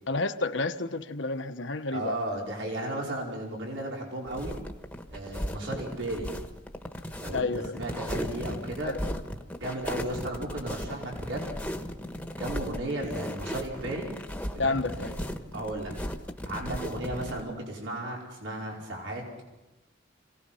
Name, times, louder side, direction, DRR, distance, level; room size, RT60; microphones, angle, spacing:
voice 1, 0.1-2.2 7.3-7.8 8.8-9.1 14.6-15.2, left 3 dB, 70° left, 1.2 m, -30 dB
voice 2, 1.9-4.6 5.1-6.3 7.2-7.5 7.7-8.9 9.5-11.5 12.4-14.1 14.5-15.2 15.5-15.9 16.5-19.2, right 1 dB, 70° right, 5.0 m, -34 dB
sound 1, 4.3-17.4, equal, 5° left, 1.3 m, -36 dB
27.0 x 18.0 x 5.7 m
head